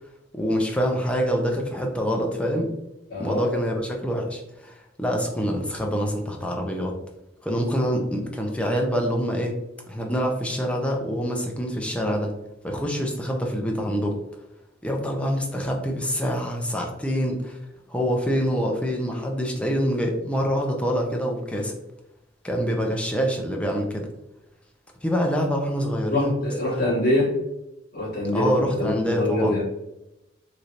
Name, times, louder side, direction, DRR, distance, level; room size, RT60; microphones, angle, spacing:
voice 1, 0.3-2.7 3.2-6.9 7.4-9.5 9.9-12.3 12.6-14.1 14.8-17.6 17.9-21.7 22.4-24.0 25.0-26.4 26.7-27.0 28.3-29.6, equal, 5° left, 1 dB, 0.5 m, -25 dB
voice 2, 3.1-3.4 26.1-27.3 27.9-29.6, left 1 dB, 55° left, -6 dB, 1.4 m, -24 dB
3.1 x 2.7 x 2.5 m, 0.94 s
head